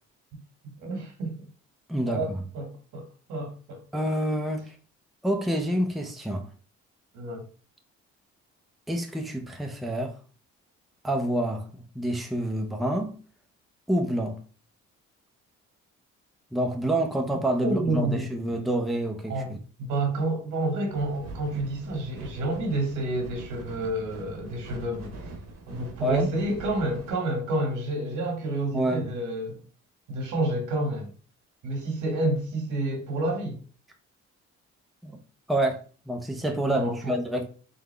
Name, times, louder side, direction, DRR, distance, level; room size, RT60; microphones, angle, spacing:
voice 1, 0.8-1.4 2.1-3.8 7.1-7.4 17.6-18.3 19.3-19.5 19.8-25.1 25.7-29.6 30.1-31.1 31.6-33.6 36.7-37.2, right 2 dB, 80° right, 1.7 m, -29 dB
voice 2, 1.9-2.4 3.9-4.8 5.2-6.5 8.9-10.2 11.0-13.1 13.9-14.4 16.5-19.4 25.7-26.3 28.7-29.2 35.0-35.2 35.5-35.8 36.1-37.5, right 1 dB, ahead, 0.7 m, -28 dB
sound 1, 20.9-27.1, right 2 dB, 60° right, 1.3 m, -43 dB
3.9 x 3.5 x 3.4 m
cardioid pair, 90°, 30 cm